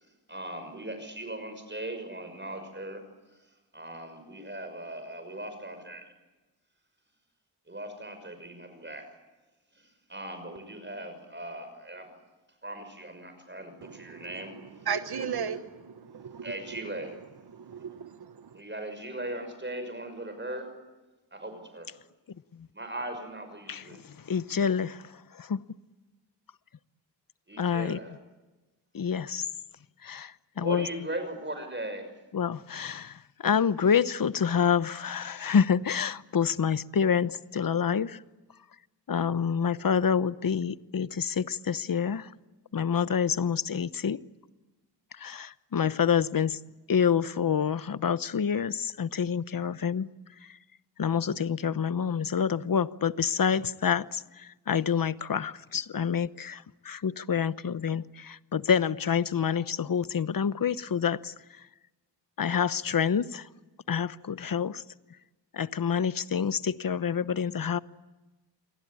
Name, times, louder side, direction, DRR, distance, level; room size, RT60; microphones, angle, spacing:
voice 1, 0.0-3.0 3.3-3.5 3.7-6.2 7.7-9.2 9.7-12.1 12.6-14.6 15.3-15.5 16.4-17.1 18.5-20.7 21.3-21.9 22.7-24.0 27.5-28.1 30.6-32.1, right 1 dB, 25° right, 6.1 m, -39 dB
voice 2, 13.8-14.5 14.9-15.7 16.3-16.5 17.5-18.6, right 7 dB, 60° right, 1.2 m, -35 dB
voice 3, 24.3-25.0 25.4-25.6 27.6-28.0 28.9-29.5 30.0-30.9 32.3-38.2 39.1-42.3 42.7-44.2 45.2-46.6 46.9-50.1 51.0-61.3 62.4-63.5 63.9-64.8 65.5-67.8, left 7 dB, 55° left, 1.0 m, -27 dB
29.0 x 23.0 x 8.6 m
wide cardioid pair, 75°, 42 cm